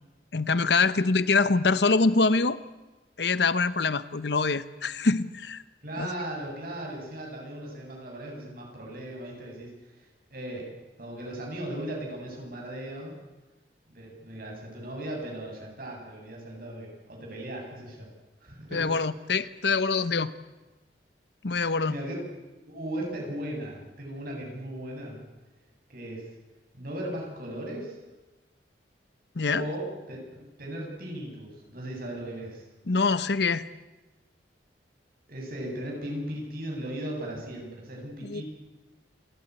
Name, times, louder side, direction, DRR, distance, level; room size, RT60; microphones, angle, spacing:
voice 1, 0.3-2.6 3.2-5.6 6.0-6.1 18.7-20.3 21.4-22.0 29.4-29.7 32.9-33.6 38.2-38.4, left 4 dB, 70° left, 15 dB, 0.9 m, -24 dB
voice 2, 5.8-9.7 10.0-10.7 11.0-13.1 13.9-18.1 18.4-18.9 21.9-22.2 22.7-25.2 25.9-26.3 26.7-28.0 29.5-32.6 35.3-38.4, right 1 dB, 50° right, 0 dB, 8.0 m, -37 dB
28.0 x 12.0 x 9.8 m, 1.1 s
head